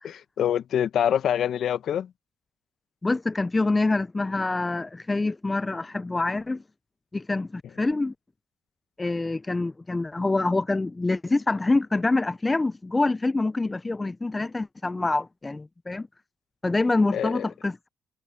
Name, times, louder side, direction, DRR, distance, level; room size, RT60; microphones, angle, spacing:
voice 1, 0.0-2.1 17.1-17.5, left 9 dB, 65° left, 1.2 m, -25 dB
voice 2, 3.0-6.6 7.1-8.1 9.0-16.1 16.6-17.9, left 2 dB, 20° left, 0.5 m, -26 dB
cardioid pair, 90°, 0 cm